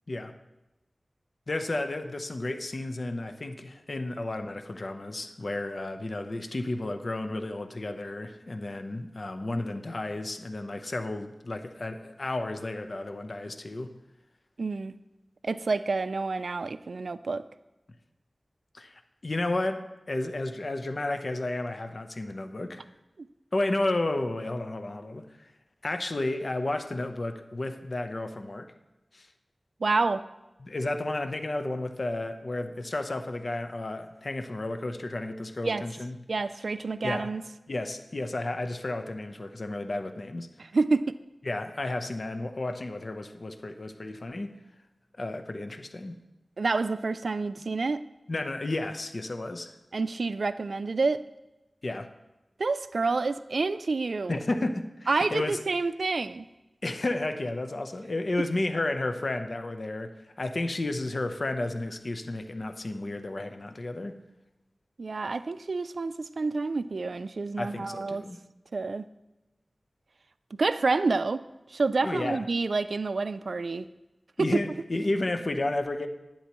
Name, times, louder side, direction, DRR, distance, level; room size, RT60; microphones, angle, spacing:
voice 1, 1.5-13.9 18.7-22.8 23.5-25.5 25.8-28.7 29.1-29.3 30.6-36.2 37.0-37.3 37.7-40.5 41.4-44.6 45.2-46.2 48.3-49.7 51.8-52.1 54.3-55.6 56.8-64.2 67.6-68.4 72.0-72.4 74.4-76.1, left 2 dB, 60° left, 7 dB, 0.8 m, -32 dB
voice 2, 14.6-14.9 15.4-17.5 23.2-23.3 29.8-30.3 35.6-35.8 36.3-37.4 40.7-41.1 46.6-48.0 49.9-51.2 52.6-54.4 55.1-56.4 65.0-68.2 68.7-69.1 70.5-71.4 71.7-73.9 74.4-74.5, right 3 dB, 80° right, 14 dB, 0.3 m, -28 dB
11.5 x 10.5 x 3.0 m, 1.0 s
wide cardioid pair, 50°, 0 cm